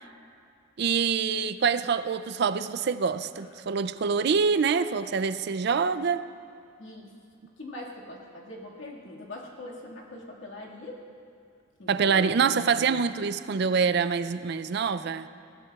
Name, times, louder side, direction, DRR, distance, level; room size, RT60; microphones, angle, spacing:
voice 1, 0.8-6.3 11.9-15.3, right 5 dB, 60° right, 12 dB, 0.4 m, -25 dB
voice 2, 3.3-3.8 6.8-7.1 7.6-11.0 11.8-12.6, left 1 dB, 90° left, -2 dB, 2.0 m, -43 dB
21.0 x 15.5 x 2.4 m, 2.3 s
head